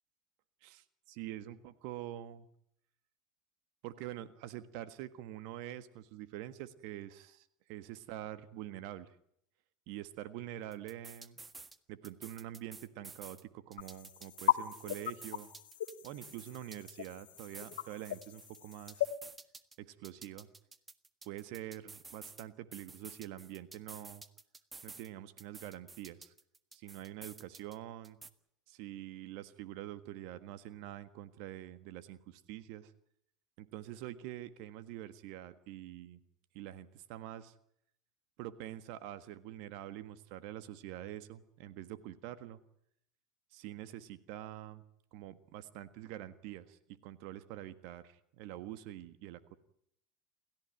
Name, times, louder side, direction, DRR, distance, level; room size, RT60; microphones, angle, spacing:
voice 1, 0.6-2.5 3.8-9.1 9.9-11.4 11.9-15.5 16.0-19.1 19.8-20.5 21.2-24.2 24.8-26.3 26.7-28.2 28.7-32.9 33.6-36.2 36.5-37.5 38.4-42.6 43.5-44.8 45.1-49.6, right 13 dB, 60° right, 13 dB, 1.5 m, -46 dB
sound 1, 10.7-11.8 12.0-13.4 13.7-17.1 17.4-19.8 20.0-22.4 22.7-25.1 25.4-27.8 28.0-28.3, right 3 dB, 20° right, 1.6 m, -52 dB
sound 2, 13.8-19.1, left 13 dB, 75° left, 1.4 m, -37 dB
29.0 x 14.5 x 9.2 m, 0.73 s
hypercardioid pair, 80°, 0 cm